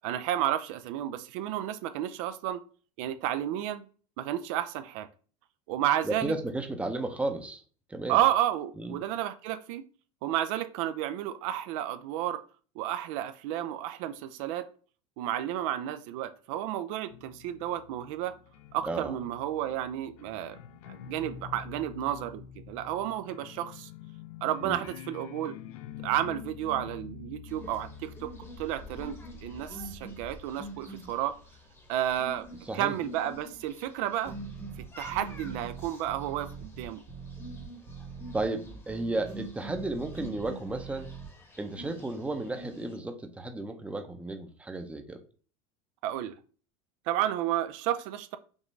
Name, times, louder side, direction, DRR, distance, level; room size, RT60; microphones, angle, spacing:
voice 1, 0.0-2.6 3.0-3.9 4.2-5.1 5.7-6.3 8.1-9.8 10.2-12.4 12.8-14.7 15.2-18.4 18.7-20.6 20.9-23.9 24.4-25.6 26.0-28.3 28.6-29.2 29.4-31.4 31.9-32.5 32.7-34.3 35.0-37.0 46.0-46.3 47.1-48.4, right 12 dB, 70° right, 0.4 m, -31 dB
voice 2, 6.0-7.6 7.9-8.2 8.8-9.0 18.8-19.2 24.6-24.8 32.6-33.0 38.3-41.1 41.6-45.2, right 2 dB, 5° right, 0.6 m, -33 dB
sound 1, 17.1-32.4, left 8 dB, 80° left, 0.5 m, -47 dB
sound 2, 27.5-43.0, equal, 15° left, 1.0 m, -47 dB
sound 3, 34.2-41.3, right 6 dB, 50° right, 1.5 m, -44 dB
5.3 x 2.5 x 3.1 m
supercardioid pair, 115°, 18 cm